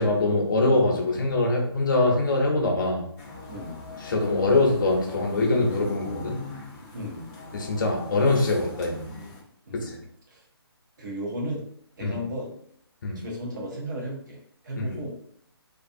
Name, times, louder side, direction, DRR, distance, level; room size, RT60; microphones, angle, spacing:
voice 1, 0.0-3.1 4.0-6.4 7.5-9.1 9.7-9.9 12.0-12.2 13.0-13.2 14.8-15.0, left 2 dB, 50° left, 0 dB, 0.7 m, -23 dB
sound 1, 3.2-9.4, left 3 dB, 10° left, 0.4 m, -41 dB
voice 2, 6.9-7.3 9.7-10.4 11.0-11.7 11.9-12.5 13.1-15.3, equal, 45° right, -3 dB, 0.9 m, -35 dB
2.4 x 2.3 x 2.6 m, 0.66 s
figure-of-eight pair, 140°, 14 cm